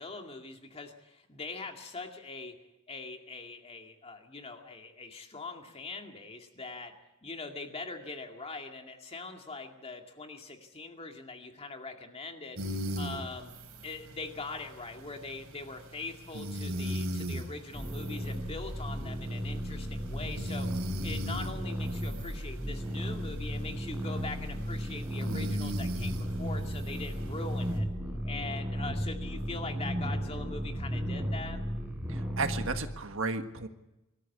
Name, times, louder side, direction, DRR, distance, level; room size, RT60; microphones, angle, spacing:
voice 1, 0.0-2.6 2.9-6.9 7.2-12.6 13.0-13.5 13.8-20.7 21.0-27.9 28.2-31.6, left 3 dB, 30° left, 4 dB, 2.2 m, -42 dB
sound 1, 12.6-27.8, equal, 85° right, 3.9 m, -40 dB
sound 2, 17.7-32.8, equal, 10° right, 4.2 m, -35 dB
voice 2, 32.1-33.7, right 3 dB, 65° right, 7 dB, 1.6 m, -33 dB
23.5 x 14.0 x 8.4 m, 0.98 s
head